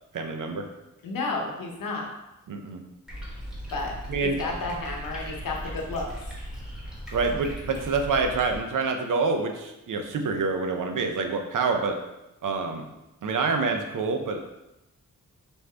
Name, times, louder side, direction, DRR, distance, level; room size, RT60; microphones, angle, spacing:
voice 1, 0.1-0.7 2.5-2.8 4.1-4.4 7.1-12.0 12.4-12.9 13.2-14.4, right 4 dB, 70° right, 5 dB, 0.6 m, -27 dB
voice 2, 1.0-2.1 3.7-4.0 4.4-6.1, left 3 dB, 80° left, 1 dB, 0.9 m, -31 dB
sound 1, 3.1-8.6, equal, ahead, 1.4 m, -38 dB
4.6 x 2.7 x 3.2 m, 0.93 s
cardioid pair, 70°, 33 cm